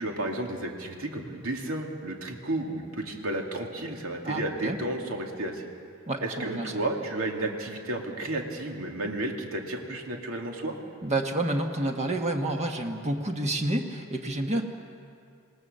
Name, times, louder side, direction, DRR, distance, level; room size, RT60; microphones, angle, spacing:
voice 1, 0.0-5.6 6.2-10.7, right 1 dB, 75° right, 1 dB, 2.7 m, -32 dB
voice 2, 4.2-4.8 6.1-6.7 11.0-14.6, right 1 dB, 30° right, 3 dB, 1.5 m, -29 dB
27.0 x 19.0 x 6.8 m, 2.4 s
head